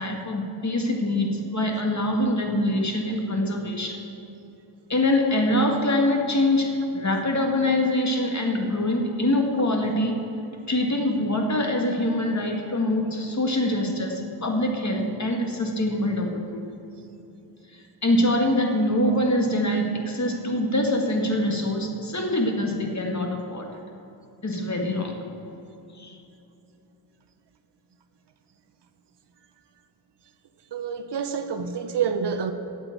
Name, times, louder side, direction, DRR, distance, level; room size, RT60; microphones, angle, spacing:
voice 1, 0.0-4.0 4.9-10.2 10.7-16.6 18.0-23.7 24.4-25.2 26.0-26.2, left 1 dB, 35° left, 2 dB, 1.9 m, -24 dB
voice 2, 30.7-32.5, right 6 dB, 60° right, 8 dB, 0.9 m, -27 dB
8.8 x 7.9 x 7.8 m, 2.9 s
cardioid pair, 50°, 47 cm